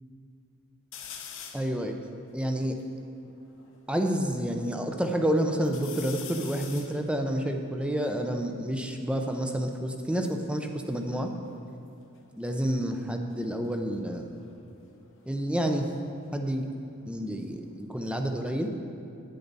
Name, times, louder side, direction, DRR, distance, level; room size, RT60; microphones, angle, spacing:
sound 1, 0.9-1.8 2.3-2.4 2.6-4.1 4.7-5.2 5.6-9.0 10.0-11.9 12.1-12.6 14.2-16.8 17.2-18.0, left 8 dB, 60° left, 0.9 m, -47 dB
voice 1, 1.5-2.0 2.3-2.8 3.9-11.3 12.4-14.3 15.3-15.9 16.3-16.7 17.1-18.7, right 1 dB, 5° right, 4 dB, 0.6 m, -29 dB
10.0 x 9.4 x 4.0 m, 2.7 s
head